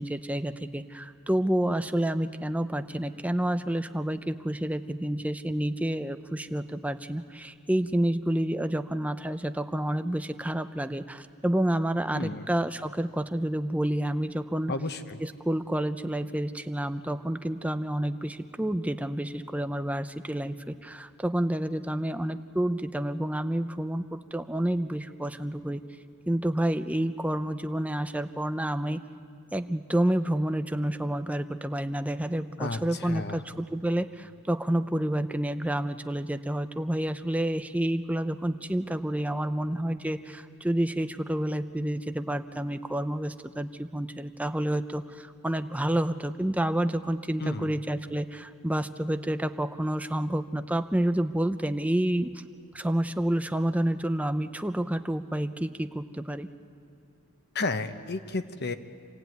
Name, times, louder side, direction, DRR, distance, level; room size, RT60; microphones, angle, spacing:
voice 1, 0.0-14.7 15.2-25.8 26.3-29.0 29.5-52.4 52.7-56.5, right 1 dB, 5° right, 9 dB, 0.7 m, -29 dB
voice 2, 14.7-15.2 32.6-33.4 47.4-47.8 57.5-58.7, left 3 dB, 50° left, 9 dB, 1.1 m, -32 dB
26.5 x 17.5 x 9.4 m, 2.4 s
head